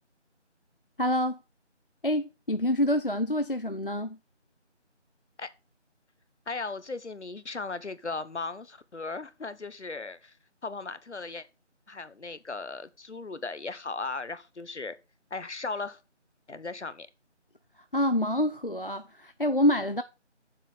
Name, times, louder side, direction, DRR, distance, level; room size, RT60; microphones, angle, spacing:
voice 1, 1.0-1.4 2.0-4.2 17.9-20.0, left 1 dB, 50° left, 0.4 m, -26 dB
voice 2, 6.5-10.3 10.6-11.4 11.9-15.0 15.3-16.0 16.5-17.1, left 3 dB, 70° left, 1.0 m, -37 dB
7.4 x 6.9 x 5.5 m
figure-of-eight pair, 180°, 36 cm